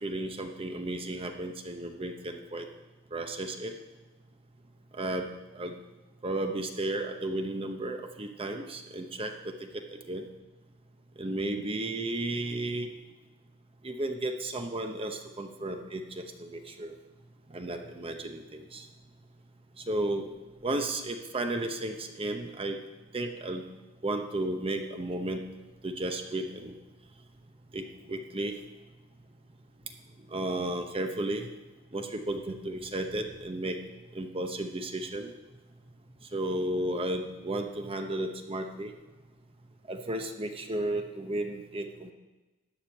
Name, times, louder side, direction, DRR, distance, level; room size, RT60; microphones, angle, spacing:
voice 1, 0.0-2.7 3.1-3.7 4.9-5.7 6.2-9.5 9.9-10.2 11.2-12.9 13.8-16.9 17.5-18.9 19.8-20.3 20.6-22.8 23.1-23.6 24.0-25.4 25.8-26.8 27.7-28.6 30.3-31.5 31.9-33.8 34.1-35.3 36.3-38.9 39.9-42.1, right 1 dB, 25° right, 5 dB, 0.8 m, -33 dB
13.5 x 5.1 x 8.7 m, 1.2 s
head